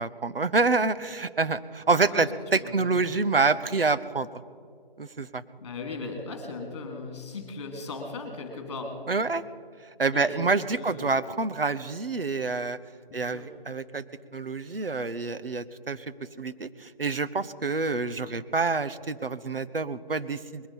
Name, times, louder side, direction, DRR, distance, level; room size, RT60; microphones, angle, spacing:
voice 1, 0.0-4.3 5.0-5.4 9.1-9.4 10.0-12.8 13.1-14.0 14.3-16.0 16.4-20.7, right 4 dB, 75° right, 13 dB, 0.9 m, -27 dB
voice 2, 2.6-3.2 5.6-8.9 10.1-10.3 10.8-11.1 13.1-13.5, left 3 dB, 30° left, 4 dB, 2.7 m, -38 dB
21.0 x 11.0 x 5.4 m, 2.2 s
figure-of-eight pair, 155°, 29 cm